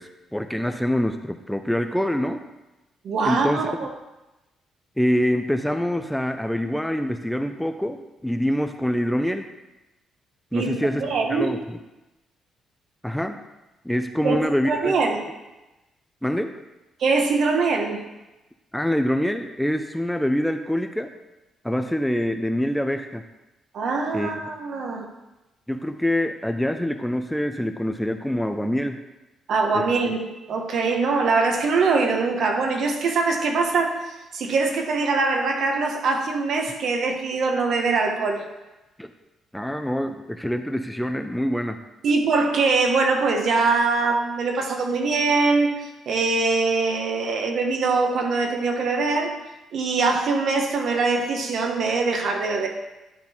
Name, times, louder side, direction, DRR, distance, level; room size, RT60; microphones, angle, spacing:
voice 1, 0.0-2.4 3.2-3.6 5.0-9.5 10.5-11.8 13.0-13.4 13.8-14.9 16.2-16.5 18.7-21.1 21.6-23.2 24.1-24.3 25.7-29.0 29.7-30.2 39.0-39.1 39.5-41.8, equal, 5° left, 7 dB, 0.5 m, -25 dB
voice 2, 3.0-3.7 10.5-11.6 14.2-14.4 14.6-15.2 17.0-18.0 23.7-25.0 29.5-30.2 30.5-38.4 42.0-49.3 49.7-52.7, right 4 dB, 65° right, 3 dB, 1.2 m, -23 dB
11.0 x 3.9 x 4.4 m, 1.0 s
cardioid pair, 90°, 0 cm